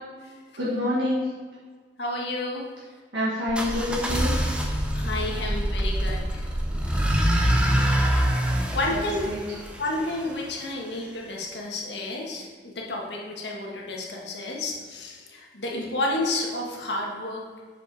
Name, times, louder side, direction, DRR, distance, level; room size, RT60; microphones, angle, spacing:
voice 1, 0.6-1.3 3.1-4.3 8.9-9.4, left 1 dB, 85° right, -8 dB, 1.6 m, -27 dB
voice 2, 2.0-2.7 4.9-6.4 8.7-9.2 9.8-17.4, left 2 dB, 75° left, -1 dB, 1.5 m, -31 dB
sound 1, 3.5-10.4, equal, 5° right, 0.7 m, -25 dB
6.9 x 5.5 x 4.7 m, 1.5 s
head